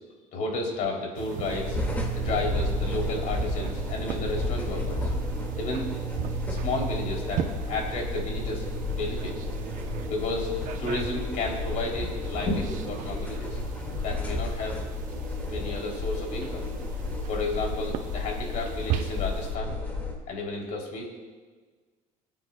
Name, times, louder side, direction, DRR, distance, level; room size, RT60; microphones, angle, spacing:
voice 1, 0.3-1.8 2.1-5.1 5.6-5.9 6.5-9.3 10.1-10.5 10.8-13.6 14.0-14.8 15.5-16.6 17.3-19.8 20.3-21.1, left 2 dB, 60° left, 0 dB, 3.1 m, -32 dB
sound 1, 1.1-19.5, right 11 dB, 60° right, 0.8 m, -37 dB
sound 2, 1.4-20.1, left 3 dB, 10° left, 2.0 m, -32 dB
25.0 x 9.2 x 2.3 m, 1.4 s
cardioid pair, 140°, 15 cm